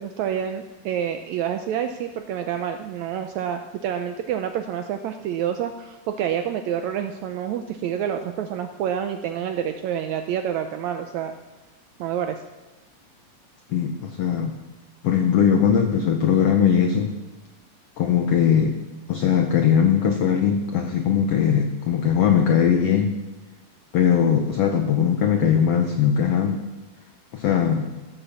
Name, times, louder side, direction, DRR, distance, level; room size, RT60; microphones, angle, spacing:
voice 1, 0.0-11.3 12.0-12.4, right 9 dB, 80° right, 7 dB, 1.6 m, -28 dB
voice 2, 13.7-14.5 15.0-17.2 18.0-18.8 19.1-23.2 23.9-26.6 27.3-27.9, left 8 dB, 85° left, 6 dB, 1.3 m, -20 dB
16.5 x 7.7 x 7.0 m, 1.2 s
omnidirectional pair, 3.9 m